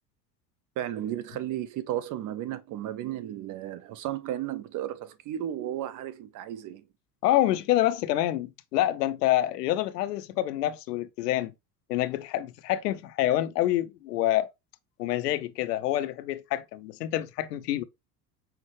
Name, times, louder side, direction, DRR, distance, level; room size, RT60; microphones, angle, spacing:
voice 1, 0.8-6.8, right 12 dB, 40° right, 0.7 m, -34 dB
voice 2, 7.2-11.5 11.9-14.5 15.0-17.8, left 14 dB, 75° left, 0.6 m, -27 dB
5.7 x 2.2 x 3.1 m
hypercardioid pair, 70°, 48 cm